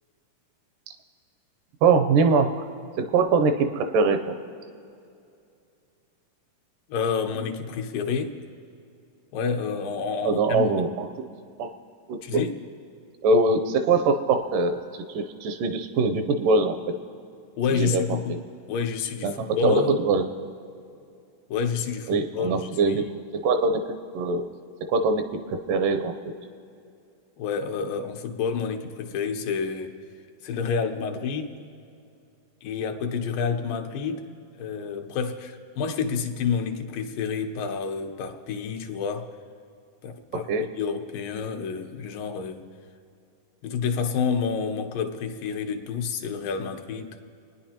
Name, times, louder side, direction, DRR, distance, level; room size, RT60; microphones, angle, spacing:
voice 1, 1.8-2.5 3.0-4.4 10.2-11.1 11.6-11.7 12.1-12.5 13.2-14.8 15.1-16.8 17.7-18.0 18.3-18.4 19.2-20.3 22.1-23.1 23.3-24.5 24.9-26.1 40.5-40.7, right 3 dB, 85° right, 7 dB, 2.3 m, -22 dB
voice 2, 6.9-8.4 9.3-10.7 12.2-12.5 17.6-18.4 18.7-20.0 21.5-23.0 27.4-29.9 30.4-31.6 32.6-34.3 34.6-39.3 40.0-40.5 40.7-42.6 43.6-47.2, left 6 dB, 85° left, 4 dB, 2.6 m, -29 dB
29.5 x 10.0 x 2.9 m, 2.5 s
omnidirectional pair, 3.8 m